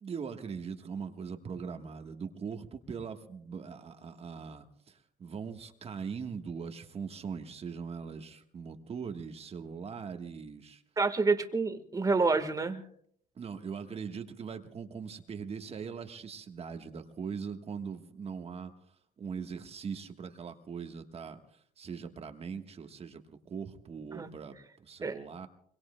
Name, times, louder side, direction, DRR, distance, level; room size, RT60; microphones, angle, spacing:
voice 1, 0.0-10.8 13.3-25.5, right 6 dB, 35° right, 6 dB, 1.3 m, -41 dB
voice 2, 11.0-12.8 24.1-24.3 25.0-25.1, right 4 dB, 20° right, 7 dB, 1.4 m, -28 dB
25.0 x 23.0 x 2.2 m, 0.65 s
cardioid pair, 110°, 17 cm